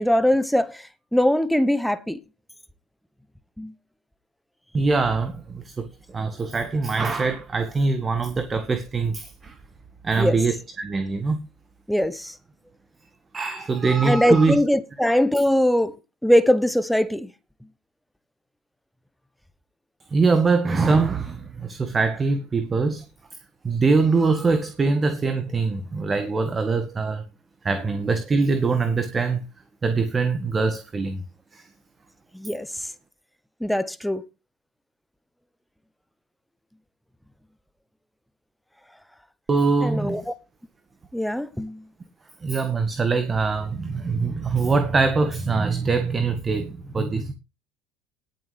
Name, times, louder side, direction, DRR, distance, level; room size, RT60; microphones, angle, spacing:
voice 1, 0.0-2.2 3.6-3.7 10.2-10.4 11.9-12.3 14.0-15.9 16.2-17.3 32.3-32.7 33.6-34.2 39.8-40.2 41.1-41.8, equal, ahead, 1.1 m, -21 dB
voice 2, 4.7-9.6 10.0-11.4 13.3-14.6 20.1-23.1 23.6-27.2 27.6-29.4 29.8-31.2 31.5-31.7 39.5-40.2 42.4-47.3, right 4 dB, 25° right, 1.8 m, -23 dB
19.0 x 7.5 x 3.4 m
hypercardioid pair, 70°, 0 cm